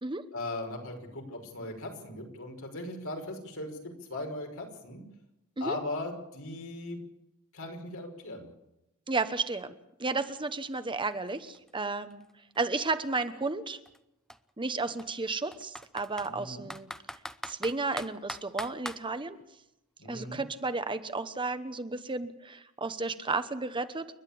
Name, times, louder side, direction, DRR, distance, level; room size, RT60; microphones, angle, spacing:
voice 1, 0.3-5.0 5.6-7.0 7.5-8.5 16.2-16.7 20.0-20.4, left 2 dB, 65° left, 3 dB, 5.5 m, -38 dB
voice 2, 9.1-9.7 10.0-12.3 12.6-13.8 14.6-16.9 17.5-19.4 20.1-24.1, right 3 dB, 20° right, 10 dB, 1.1 m, -33 dB
Computer keyboard, 10.7-10.8 11.1-13.1 13.8-14.0 14.3-14.4 15.0-16.3 16.7-19.0, equal, 5° left, 0.8 m, -41 dB
29.5 x 11.5 x 8.6 m, 0.88 s
head